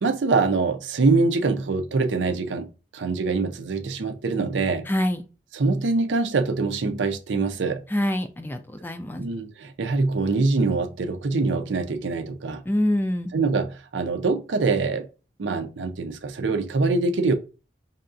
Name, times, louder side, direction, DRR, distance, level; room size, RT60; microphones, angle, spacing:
voice 1, 0.0-4.9 5.5-7.8 9.2-12.6 13.3-15.1 15.4-17.3, right 3 dB, 90° right, 0.5 m, -24 dB
voice 2, 4.9-5.2 7.9-9.2 12.7-13.3, left 1 dB, 10° left, 0.3 m, -25 dB
5.5 x 2.4 x 2.5 m
head